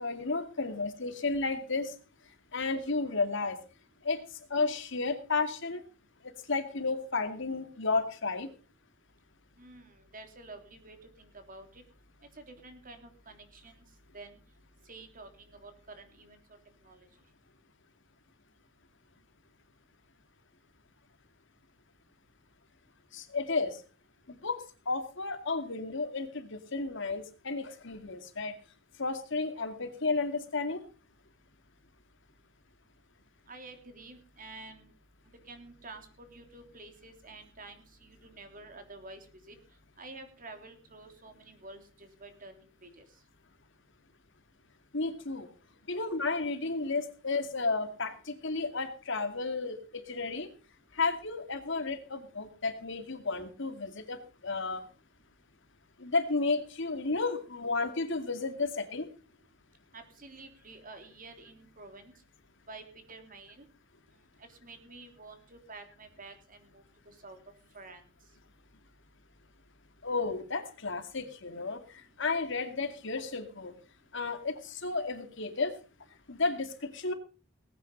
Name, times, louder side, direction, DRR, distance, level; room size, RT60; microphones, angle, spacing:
voice 1, 0.0-1.9 2.5-3.6 4.0-5.8 6.5-8.5 23.1-23.8 24.3-28.6 29.0-30.8 44.9-45.5 45.9-50.5 50.9-54.8 56.0-59.1 70.0-73.7 74.1-75.8 76.3-77.1, left 3 dB, 65° left, 7 dB, 2.4 m, -32 dB
voice 2, 9.6-11.8 12.4-13.9 14.1-14.4 14.8-16.4 16.8-17.1 33.5-34.9 35.5-39.5 40.0-43.0 59.9-62.1 62.7-63.6 64.4-67.4 67.7-68.0, right 3 dB, 45° right, 6 dB, 3.4 m, -49 dB
19.0 x 9.3 x 5.4 m, 0.36 s
head